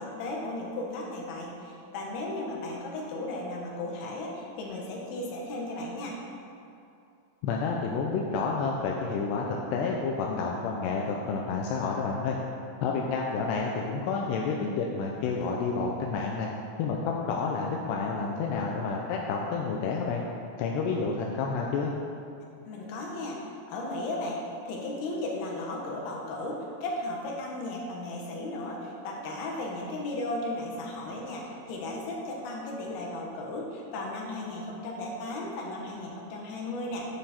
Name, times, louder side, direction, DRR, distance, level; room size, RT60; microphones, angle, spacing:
voice 1, 0.0-6.2 22.6-37.1, left 2 dB, 65° left, -2 dB, 2.8 m, -35 dB
voice 2, 7.4-12.4 12.8-16.5 16.8-20.2 20.6-21.9, left 4 dB, 80° left, -1 dB, 2.5 m, -29 dB
10.5 x 9.0 x 4.4 m, 2.6 s
omnidirectional pair, 5.5 m